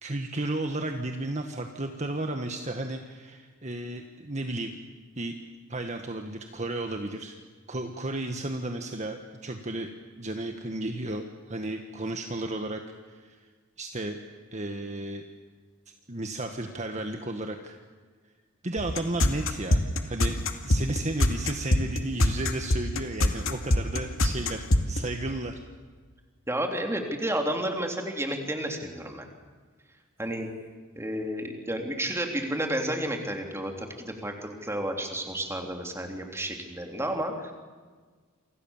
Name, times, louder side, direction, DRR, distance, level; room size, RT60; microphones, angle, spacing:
voice 1, 0.0-4.8 5.1-5.3 5.7-7.4 7.7-9.9 10.2-13.4 13.8-14.2 14.5-15.2 16.1-17.8 18.6-20.3 20.6-25.6, right 2 dB, 35° right, 5 dB, 1.7 m, -33 dB
sound 1, 18.8-25.0, left 1 dB, 85° left, 2.4 m, -24 dB
voice 2, 26.5-29.3 30.2-30.5 31.0-37.5, right 1 dB, 15° right, 3 dB, 3.6 m, -31 dB
28.5 x 26.0 x 7.4 m, 1.5 s
head